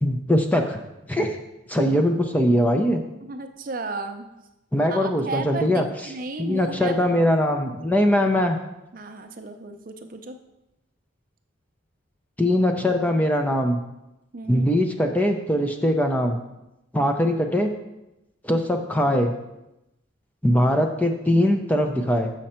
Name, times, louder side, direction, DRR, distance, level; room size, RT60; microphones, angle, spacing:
voice 1, 0.0-0.8 1.1-1.4 1.7-3.0 4.7-5.9 6.4-8.6 12.4-13.8 14.5-16.4 16.9-17.7 18.4-19.3 20.4-22.3, equal, 10° left, 4 dB, 0.5 m, -21 dB
voice 2, 3.2-4.3 4.9-7.1 8.9-10.4 14.3-14.7, right 3 dB, 40° right, 6 dB, 0.5 m, -34 dB
6.7 x 6.3 x 4.3 m, 0.93 s
head